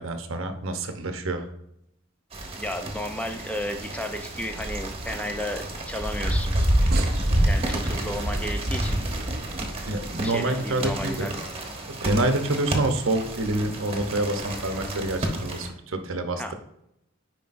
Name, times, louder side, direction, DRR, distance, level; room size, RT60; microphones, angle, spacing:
voice 1, 0.0-1.5 9.9-11.3 11.9-16.5, right 2 dB, 80° right, 7 dB, 0.9 m, -27 dB
rain under umbrella, 2.3-15.7, right 1 dB, 30° right, 1.1 m, -28 dB
voice 2, 2.6-6.6 7.4-9.0 10.2-11.4 16.4-16.5, left 1 dB, 5° left, 5 dB, 0.5 m, -33 dB
sound 1, 3.6-11.5, right 3 dB, 50° right, 0.6 m, -41 dB
9.5 x 5.0 x 2.6 m, 0.79 s
head